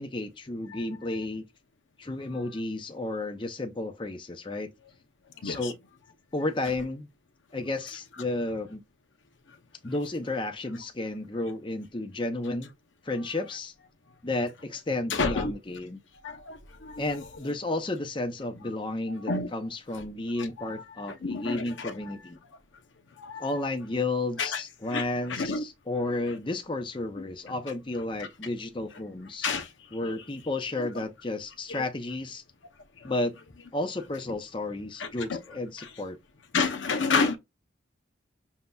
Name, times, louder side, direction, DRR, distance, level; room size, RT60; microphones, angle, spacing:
voice 1, 0.0-1.5 2.0-4.7 5.4-5.7 6.3-7.1 7.5-8.8 9.8-12.7 13.0-13.7 14.2-16.0 17.0-22.4 23.4-29.5 29.9-32.4 33.0-33.4 33.7-36.2, left 2 dB, 25° left, 0.6 m, -32 dB
voice 2, 15.1-15.5 16.2-17.2 19.3-19.5 20.4-22.0 23.2-23.5 24.4-24.6 24.9-25.6 29.4-29.7 31.7-31.8 35.0-35.4 36.5-37.4, left 4 dB, 75° left, 0.7 m, -30 dB
7.2 x 2.6 x 2.3 m
head